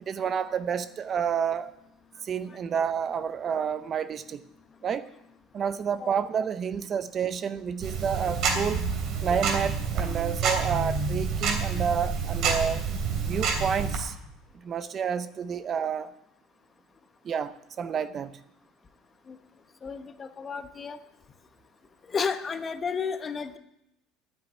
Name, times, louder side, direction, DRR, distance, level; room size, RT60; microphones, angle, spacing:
voice 1, 0.1-1.7 2.2-4.4 4.8-5.1 5.5-8.8 9.2-12.9 13.2-14.2 14.6-16.1 17.2-18.4, right 7 dB, 40° right, 13 dB, 0.7 m, -29 dB
Tick-tock, 7.8-14.0, right 5 dB, 55° right, 3.2 m, -28 dB
voice 2, 19.8-21.0 22.1-23.6, left 5 dB, 30° left, 9 dB, 1.1 m, -32 dB
9.5 x 9.0 x 9.5 m, 0.82 s
supercardioid pair, 110°, 0 cm